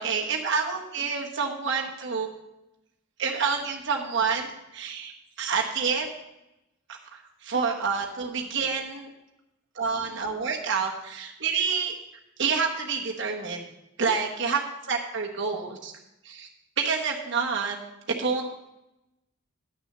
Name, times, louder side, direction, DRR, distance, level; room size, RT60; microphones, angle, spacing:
voice 1, 0.0-2.3 3.2-4.5 4.7-6.1 6.9-9.1 9.7-12.0 12.4-13.6 14.0-15.9 16.2-16.5 16.8-17.8 18.2-18.4, right 5 dB, 60° right, 0 dB, 1.3 m, -28 dB
10.0 x 6.3 x 6.6 m, 0.90 s
head